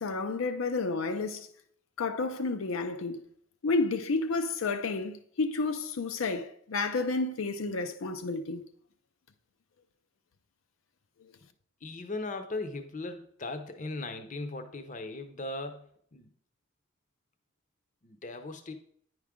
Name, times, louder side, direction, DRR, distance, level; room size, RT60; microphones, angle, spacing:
voice 1, 0.0-1.5 2.0-3.2 3.6-8.7, left 3 dB, 90° left, 0.6 m, -31 dB
voice 2, 11.8-16.3 18.0-18.7, left 2 dB, 40° left, 0.6 m, -38 dB
9.3 x 4.8 x 3.6 m
head